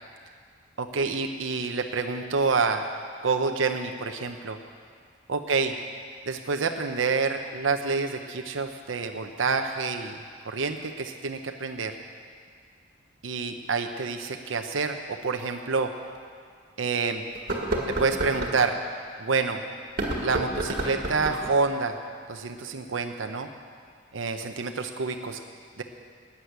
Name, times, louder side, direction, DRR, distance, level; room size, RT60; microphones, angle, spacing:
voice 1, 0.8-2.8 3.2-4.6 5.3-5.7 6.3-10.2 10.4-12.0 13.2-15.9 16.8-17.2 17.9-18.8 19.2-19.6 20.2-22.0 22.3-23.5 24.1-25.4 25.8-25.9, right 4 dB, 80° right, 5 dB, 0.8 m, -28 dB
sound 1, 15.4-15.5 16.1-16.2 17.3-18.6 19.8-21.5, right 1 dB, 50° right, 2.0 m, -30 dB
12.5 x 9.7 x 8.2 m, 2.1 s
head